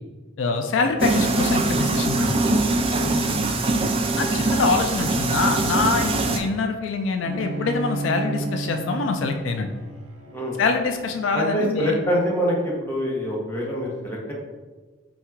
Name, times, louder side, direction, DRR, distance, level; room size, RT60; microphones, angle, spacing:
voice 1, 0.4-2.4 4.2-9.7 10.6-12.0, left 4 dB, 70° left, 5 dB, 0.3 m, -24 dB
sound 1, 1.0-6.4, right 2 dB, 30° right, 0.3 m, -22 dB
voice 2, 3.0-3.3 10.3-10.6 11.3-14.3, equal, 10° left, -4 dB, 0.8 m, -25 dB
Bowed string instrument, 7.2-12.5, right 3 dB, 80° right, 0.5 m, -33 dB
3.6 x 2.3 x 4.4 m, 1.3 s
head